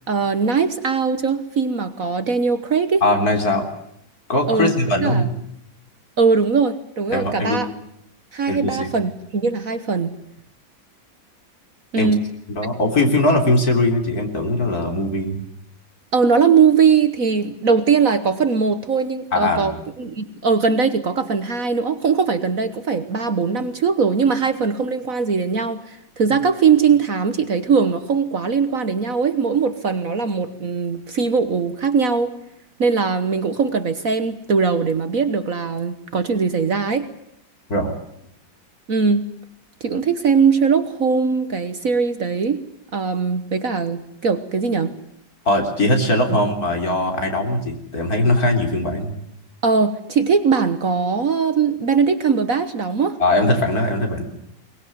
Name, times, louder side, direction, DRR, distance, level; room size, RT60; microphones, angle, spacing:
voice 1, 0.1-3.0 4.5-4.7 5.0-5.2 6.2-7.7 8.3-10.1 11.9-12.3 16.1-32.3 32.8-37.1 38.9-39.3 39.8-42.6 42.9-44.9 46.3-46.4 49.6-53.2, right 5 dB, 50° right, 11 dB, 1.5 m, -20 dB
voice 2, 3.0-3.7 4.3-5.3 7.1-7.6 8.5-9.0 12.0-12.1 12.5-15.4 19.3-19.8 37.7-37.9 45.5-49.2 53.2-54.2, left 1 dB, 50° left, 4 dB, 4.1 m, -20 dB
23.0 x 20.5 x 9.4 m, 0.74 s
omnidirectional pair, 2.0 m